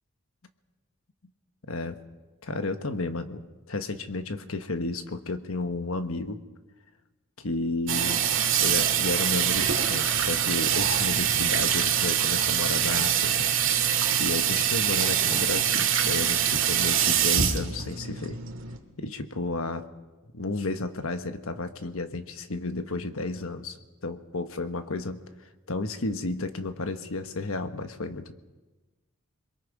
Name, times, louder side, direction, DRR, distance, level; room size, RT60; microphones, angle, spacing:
voice 1, 1.7-2.0 2.4-6.4 7.4-8.2 8.6-13.5 14.2-18.4 19.0-19.9 20.3-23.8 24.0-25.2 25.7-28.3, left 2 dB, 70° left, 8 dB, 1.2 m, -32 dB
Water tap faucet / Sink (filling or washing), 7.9-18.8, right 9 dB, 60° right, 2.0 m, -24 dB
27.5 x 22.5 x 4.8 m, 1.2 s
head